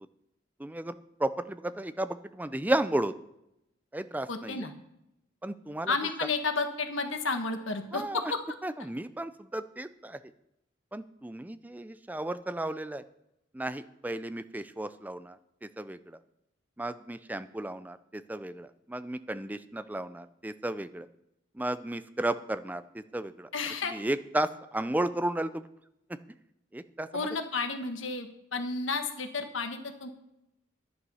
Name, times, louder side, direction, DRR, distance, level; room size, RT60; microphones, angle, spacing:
voice 1, 0.6-3.1 3.9-4.7 5.4-6.0 7.9-8.3 8.6-10.2 10.9-13.0 13.5-16.2 16.8-21.1 21.5-23.5 23.9-25.7 26.1-26.2 26.7-27.3, right 1 dB, 10° right, 12 dB, 0.4 m, -34 dB
voice 2, 4.3-4.7 5.9-8.0 23.5-24.0 27.1-30.1, left 4 dB, 75° left, 6 dB, 1.4 m, -32 dB
11.0 x 9.5 x 5.6 m, 0.85 s
head